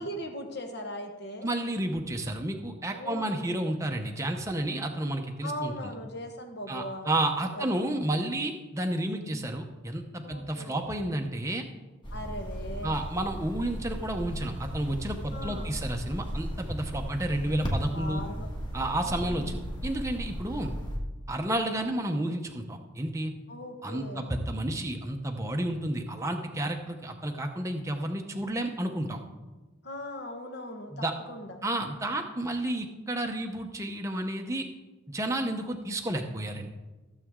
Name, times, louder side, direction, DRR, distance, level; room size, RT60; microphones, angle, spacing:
voice 1, 0.0-1.5 2.9-3.4 5.4-7.1 7.5-7.7 10.2-10.8 12.1-13.0 15.3-15.8 17.9-18.5 19.0-19.6 23.5-24.3 29.8-31.6, equal, 55° left, 4 dB, 1.4 m, -39 dB
voice 2, 1.4-5.9 6.7-11.6 12.8-18.2 18.7-20.7 21.3-23.3 23.8-29.2 30.9-31.1 31.6-34.7 35.1-36.7, right 1 dB, 15° right, 3 dB, 0.7 m, -31 dB
sound 1, 12.0-21.0, equal, 20° left, 1.7 m, -36 dB
15.5 x 7.4 x 3.7 m, 1.2 s
head